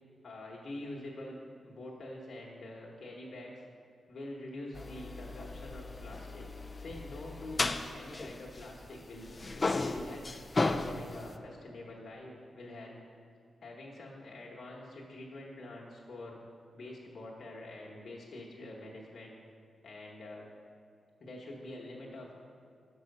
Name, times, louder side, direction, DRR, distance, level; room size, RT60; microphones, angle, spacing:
voice 1, 0.2-1.3 1.6-3.6 4.1-6.5 6.7-7.6 7.9-10.3 10.7-13.0 13.6-16.4 16.7-19.4 19.8-20.4 21.2-22.3, left 1 dB, 60° left, -4 dB, 1.1 m, -46 dB
sound 1, 4.7-9.0 9.2-11.3, left 3 dB, 30° left, 0.3 m, -35 dB
6.3 x 5.5 x 5.3 m, 2.3 s
cardioid pair, 85°, 0 cm